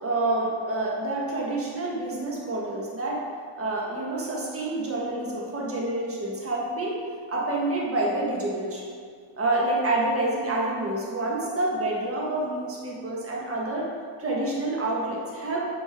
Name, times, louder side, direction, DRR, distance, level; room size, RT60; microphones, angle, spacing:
voice 1, 0.0-3.2 3.6-7.0 7.3-8.9 9.4-13.9 14.2-15.6, right 2 dB, 25° right, -4 dB, 1.3 m, -28 dB
7.5 x 5.4 x 3.6 m, 2.1 s
cardioid pair, 125°, 50 cm